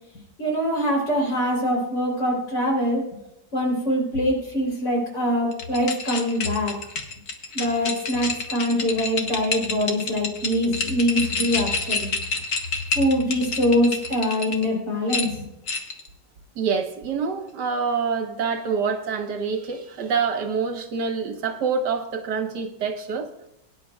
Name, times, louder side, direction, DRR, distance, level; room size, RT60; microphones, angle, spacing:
voice 1, 0.4-3.0 3.5-6.7 7.5-12.1 12.9-15.5, equal, 75° left, -1 dB, 4.2 m, -23 dB
sound 1, 5.5-14.7 15.1-16.1, left 3 dB, 60° left, 1.6 m, -28 dB
voice 2, 16.5-23.3, right 5 dB, 70° right, 5 dB, 1.6 m, -26 dB
21.5 x 10.0 x 2.3 m, 0.84 s
omnidirectional pair, 1.9 m